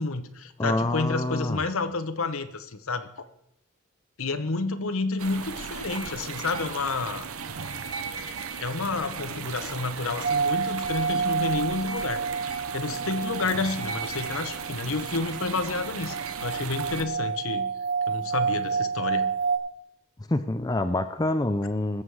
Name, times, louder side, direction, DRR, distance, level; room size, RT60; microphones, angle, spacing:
voice 1, 0.0-3.2 4.2-7.2 8.6-12.2 12.7-17.7 18.1-19.3, left 3 dB, 70° left, 11 dB, 1.0 m, -30 dB
voice 2, 0.6-1.6 20.3-22.0, left 2 dB, 15° left, 9 dB, 0.5 m, -26 dB
sound 1, 5.2-17.0, right 5 dB, 75° right, 0.9 m, -36 dB
sound 2, 10.2-19.6, right 5 dB, 50° right, 4.2 m, -29 dB
21.0 x 7.5 x 4.8 m, 0.77 s
head